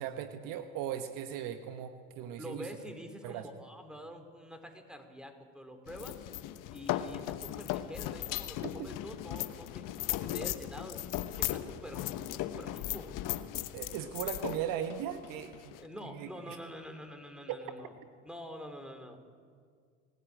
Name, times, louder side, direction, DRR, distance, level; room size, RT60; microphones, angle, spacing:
voice 1, 0.0-2.7 3.2-3.5 8.6-8.9 13.7-15.7 16.0-16.6 17.5-17.6, right 10 dB, 65° right, 9 dB, 1.3 m, -38 dB
voice 2, 2.4-6.2 6.7-11.0 11.3-13.2 15.7-17.9 18.2-19.2, equal, ahead, 6 dB, 4.0 m, -46 dB
sound 1, 5.9-15.9, left 14 dB, 60° left, 1.2 m, -37 dB
28.5 x 14.0 x 9.0 m, 2.1 s
hypercardioid pair, 70°, 36 cm